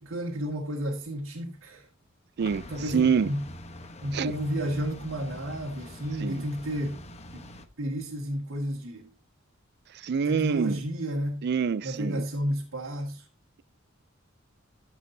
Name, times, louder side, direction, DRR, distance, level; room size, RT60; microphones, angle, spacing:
voice 1, 0.0-1.9 2.7-3.4 4.0-7.0 7.3-7.4 7.8-9.1 10.3-11.4 11.8-13.3, equal, 80° right, 1.8 m, -32 dB
sound 1, 2.4-7.7, left 1 dB, 35° left, 1.0 m, -44 dB
voice 2, 2.4-3.3 4.1-4.3 6.2-6.4 9.9-10.8 11.4-12.2, right 6 dB, 55° right, 0.4 m, -26 dB
14.5 x 7.3 x 2.7 m
head